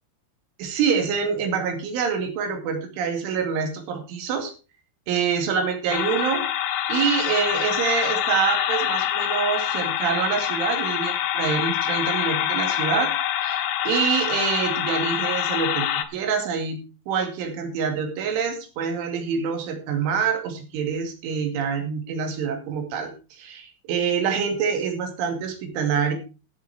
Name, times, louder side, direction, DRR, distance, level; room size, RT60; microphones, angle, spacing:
voice 1, 0.6-4.5 5.1-6.4 6.9-13.1 13.4-15.9 16.1-16.8 17.1-26.1, right 6 dB, 80° right, 5 dB, 4.8 m, -26 dB
sound 1, 5.9-16.1, left 11 dB, 75° left, 3.6 m, -25 dB
14.5 x 8.0 x 4.8 m, 0.32 s
omnidirectional pair, 5.6 m